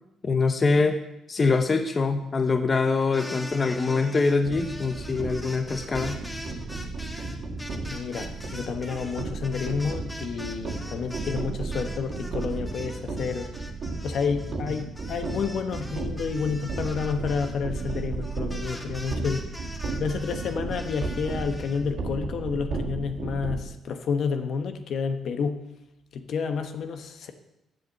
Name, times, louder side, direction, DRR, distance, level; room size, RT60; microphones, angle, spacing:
voice 1, 0.2-1.0 1.3-6.2, left 4 dB, 35° left, 7 dB, 0.8 m, -24 dB
sound 1, 3.0-11.4 11.7-21.8, left 1 dB, 10° left, 1.8 m, -42 dB
sound 2, 4.4-23.6, right 3 dB, 60° right, 1.8 m, -34 dB
voice 2, 7.9-13.5 14.0-19.5 20.0-25.6 26.1-27.3, left 6 dB, 65° left, 7 dB, 1.0 m, -30 dB
8.0 x 7.5 x 7.2 m, 0.89 s
cardioid pair, 90°, 0 cm